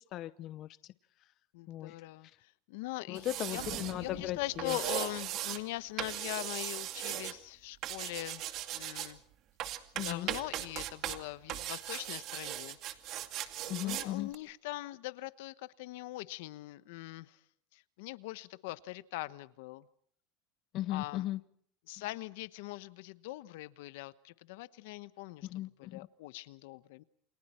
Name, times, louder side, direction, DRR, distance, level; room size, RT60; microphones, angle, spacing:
voice 1, 0.1-0.7 1.7-1.9 3.1-4.8 9.9-10.3 13.7-14.3 20.7-21.4 25.4-26.1, left 14 dB, 45° left, 0.8 m, -37 dB
voice 2, 1.5-3.6 4.0-8.4 8.7-9.2 10.0-12.8 13.6-17.4 17.7-19.9 20.9-21.3 21.9-25.5 25.8-27.0, left 18 dB, 75° left, 1.1 m, -42 dB
sound 1, 3.1-3.9 4.6-5.6 6.0-7.3 7.8-9.1 9.6-11.2 11.5-14.1 14.3-14.4, right 13 dB, 45° right, 2.3 m, -38 dB
sound 2, 3.5-5.7, right 15 dB, 60° right, 2.0 m, -50 dB
29.0 x 26.5 x 4.5 m
supercardioid pair, 145°, 0 cm